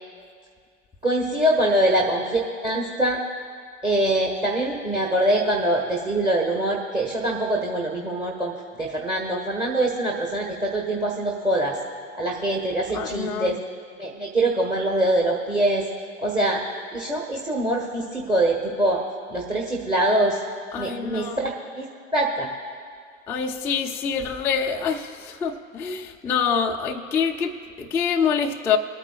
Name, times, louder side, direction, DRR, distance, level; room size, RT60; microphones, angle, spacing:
voice 1, 1.0-3.2 3.8-8.5 8.8-11.8 12.2-13.6 14.0-15.9 16.2-16.6 16.9-20.4 20.8-21.8 22.1-22.5, right 1 dB, 10° right, -2 dB, 1.1 m, -24 dB
voice 2, 12.9-13.6 20.7-21.5 23.3-28.8, left 6 dB, 5° left, -1 dB, 0.3 m, -26 dB
26.0 x 9.0 x 2.3 m, 2.1 s
hypercardioid pair, 105°, 40 cm